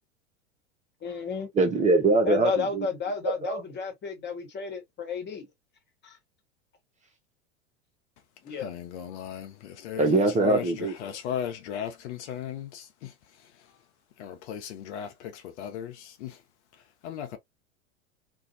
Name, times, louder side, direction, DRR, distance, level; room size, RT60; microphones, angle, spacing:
voice 1, 1.0-1.5 2.3-5.5 6.0-6.2 8.4-8.7, left 5 dB, 25° left, 1.3 m, -32 dB
voice 2, 1.6-2.9 3.2-3.6 10.0-11.1, right 3 dB, 20° right, 0.7 m, -23 dB
voice 3, 8.6-10.0 10.4-12.8 14.2-16.3 17.0-17.4, left 9 dB, 60° left, 0.8 m, -36 dB
2.7 x 2.3 x 2.6 m
hypercardioid pair, 95°, 38 cm